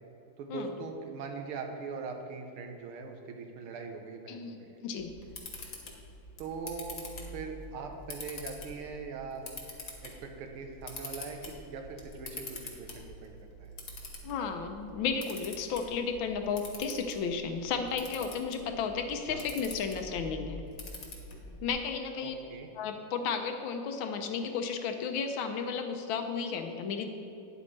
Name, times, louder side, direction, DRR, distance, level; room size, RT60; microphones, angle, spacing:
voice 1, 0.4-4.8 6.4-9.5 10.0-13.7 19.3-19.4 22.2-22.7, right 4 dB, 90° right, 4 dB, 1.8 m, -41 dB
voice 2, 4.8-5.1 14.2-20.6 21.6-22.3 22.7-27.1, left 6 dB, 75° left, 6 dB, 1.3 m, -33 dB
Camera, 5.0-21.7, left 2 dB, 45° left, 1.4 m, -46 dB
9.6 x 8.3 x 3.2 m, 2.8 s
omnidirectional pair, 2.3 m